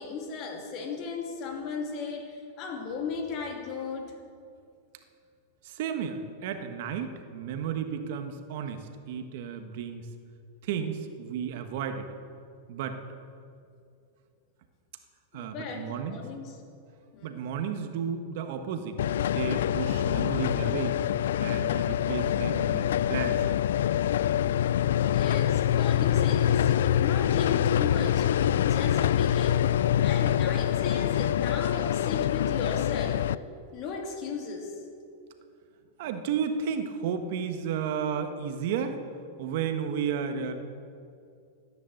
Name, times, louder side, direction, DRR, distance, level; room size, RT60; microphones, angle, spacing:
voice 1, 0.0-4.1 15.3-16.6 17.1-17.4 25.1-28.3 28.6-29.7 30.0-33.3 33.7-34.8, left 5 dB, 40° left, 2 dB, 2.7 m, -36 dB
voice 2, 5.6-10.1 10.6-12.1 12.7-13.0 15.3-16.2 17.2-21.0 21.4-23.6 36.0-39.0 39.4-40.5, right 7 dB, 60° right, 7 dB, 1.4 m, -33 dB
sound 1, 19.0-33.3, left 10 dB, 80° left, 0.4 m, -25 dB
16.0 x 9.8 x 7.9 m, 2.5 s
supercardioid pair, 140°, 0 cm